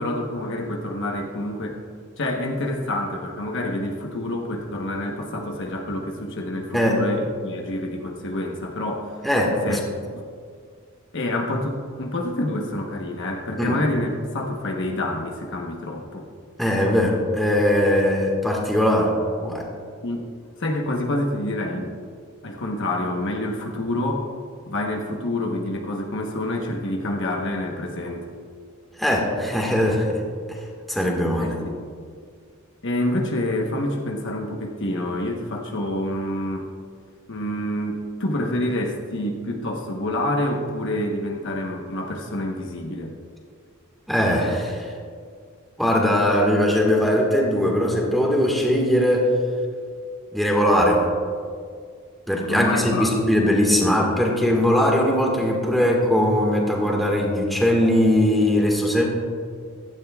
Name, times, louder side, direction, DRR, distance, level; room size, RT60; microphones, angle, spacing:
voice 1, 0.0-1.8 2.2-9.2 9.6-9.8 10.1-10.2 11.1-16.3 20.0-20.3 20.6-22.0 22.4-24.3 24.7-28.3 31.4-31.7 32.8-36.7 37.3-43.1 52.5-53.1, left 1 dB, 60° left, 1 dB, 1.1 m, -27 dB
voice 2, 9.2-9.8 13.6-13.8 16.6-19.2 19.4-19.7 29.0-30.2 30.5-30.6 30.9-31.5 44.1-44.9 45.8-49.3 50.3-51.0 52.3-59.0, equal, ahead, -1 dB, 1.7 m, -20 dB
16.0 x 12.0 x 2.4 m, 2.1 s
head